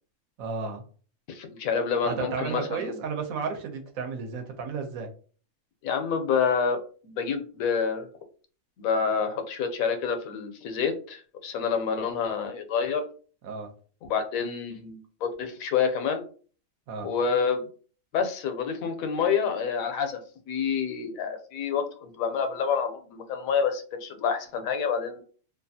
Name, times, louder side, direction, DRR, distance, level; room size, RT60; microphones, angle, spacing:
voice 1, 0.4-0.8 2.0-5.1 13.4-13.7 16.9-17.1, right 5 dB, 90° right, 5 dB, 1.1 m, -33 dB
voice 2, 1.3-3.0 5.8-8.1 8.8-13.0 14.1-16.2 17.0-17.7 18.1-20.2 20.5-25.2, left 6 dB, 85° left, 7 dB, 1.0 m, -28 dB
2.6 x 2.4 x 2.6 m, 0.41 s
omnidirectional pair, 1.4 m